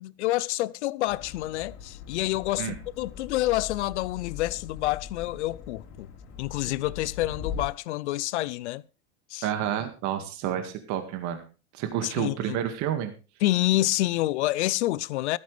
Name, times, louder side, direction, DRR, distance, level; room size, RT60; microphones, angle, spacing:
voice 1, 0.0-6.1 6.4-8.8 9.3-9.5 12.0-12.6 13.4-15.4, left 16 dB, 80° left, 0.7 m, -28 dB
sound 1, 1.1-7.7, left 7 dB, 50° left, 3.8 m, -41 dB
voice 2, 9.4-11.4 11.7-13.1, right 10 dB, 55° right, 2.0 m, -30 dB
15.0 x 13.5 x 3.4 m
hypercardioid pair, 100°, 34 cm